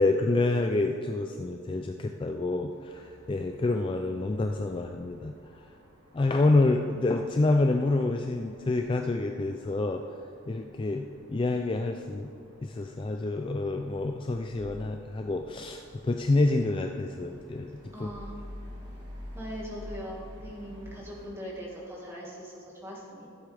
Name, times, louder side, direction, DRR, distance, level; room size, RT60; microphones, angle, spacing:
voice 1, 0.0-5.3 6.1-10.0 10.5-12.3 12.6-18.1, left 2 dB, 25° left, 4 dB, 0.3 m, -27 dB
sound 1, 2.7-21.3, equal, 55° right, 1.9 m, -50 dB
voice 2, 17.9-18.4 19.3-23.3, equal, 10° right, -4 dB, 1.9 m, -41 dB
14.5 x 7.9 x 3.4 m, 2.6 s
head